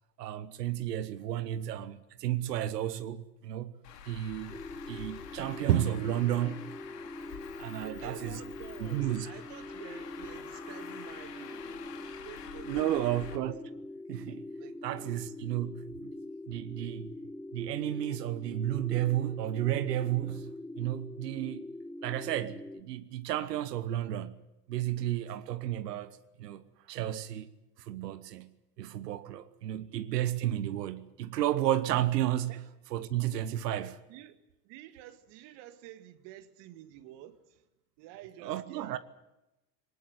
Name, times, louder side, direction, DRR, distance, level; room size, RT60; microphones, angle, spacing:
voice 1, 0.2-3.7 4.1-4.6 4.9-6.6 7.6-8.4 8.8-9.3 12.7-13.6 14.1-14.4 14.8-16.1 16.5-17.1 17.5-20.5 20.8-21.6 22.0-24.4 24.7-26.6 26.9-27.5 27.8-28.5 28.8-32.5 32.9-34.0 38.4-39.0, right 12 dB, 80° right, 1.1 m, -32 dB
Traffic noise roadway noise, 3.8-13.4, left 8 dB, 80° left, 2.6 m, -48 dB
sound 1, 4.5-22.8, left 2 dB, 5° left, 1.0 m, -43 dB
voice 2, 7.8-11.7 12.2-13.2 14.6-15.1 29.6-29.7 32.5-32.6 34.1-34.4 34.6-37.6 38.0-39.0, right 13 dB, 60° right, 2.1 m, -50 dB
20.0 x 19.5 x 9.5 m
hypercardioid pair, 80°, 47 cm